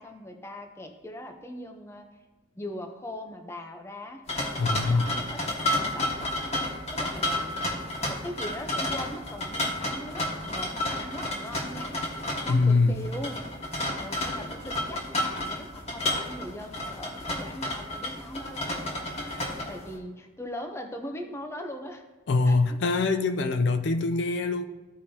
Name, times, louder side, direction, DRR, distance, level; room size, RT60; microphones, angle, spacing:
voice 1, 0.0-2.1 2.5-4.2 4.7-6.5 6.9-7.6 8.1-11.9 12.4-13.4 14.0-18.8 19.1-19.3 19.7-22.0 22.4-22.8, left 1 dB, 15° left, 4 dB, 0.7 m, -40 dB
sound 1, 4.3-20.0, left 1 dB, 30° left, 1.4 m, -31 dB
voice 2, 4.6-5.1 12.5-13.0 19.3-19.4 22.3-24.6, left 3 dB, 65° left, 8 dB, 0.4 m, -24 dB
14.5 x 5.0 x 2.8 m, 1.2 s
head